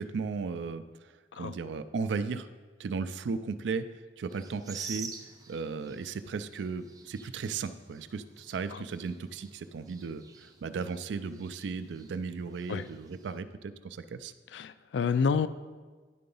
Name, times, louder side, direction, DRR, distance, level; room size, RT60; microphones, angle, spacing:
voice 1, 0.0-2.5 2.8-3.9 4.2-5.1 5.5-14.3, right 5 dB, 80° right, 12 dB, 0.4 m, -36 dB
sound 1, 4.3-13.4, right 4 dB, 20° right, 0.4 m, -49 dB
voice 2, 14.5-15.5, left 5 dB, 80° left, 14 dB, 0.3 m, -29 dB
10.0 x 3.9 x 5.4 m, 1.4 s
head